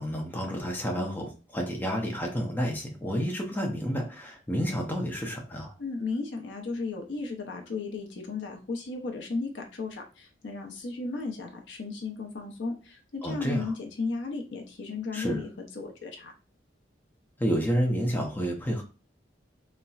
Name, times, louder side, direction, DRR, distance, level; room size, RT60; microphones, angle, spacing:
voice 1, 0.0-5.7 13.2-13.7 15.1-15.4 17.4-18.8, equal, 10° left, 1 dB, 0.6 m, -30 dB
voice 2, 5.8-16.3, left 3 dB, 70° left, 3 dB, 0.6 m, -35 dB
4.0 x 2.1 x 2.4 m, 0.33 s
head